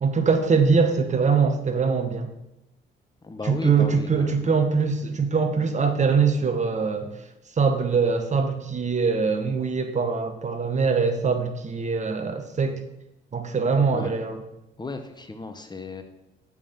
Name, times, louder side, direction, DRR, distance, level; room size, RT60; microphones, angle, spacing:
voice 1, 0.0-2.3 3.4-7.1 7.6-12.8 13.3-14.4, right 5 dB, 35° right, 7 dB, 1.0 m, -23 dB
voice 2, 3.2-4.5 13.9-14.1 14.8-16.0, left 3 dB, 20° left, 7 dB, 0.8 m, -35 dB
7.1 x 5.4 x 5.7 m, 0.89 s
cardioid pair, 90°, 20 cm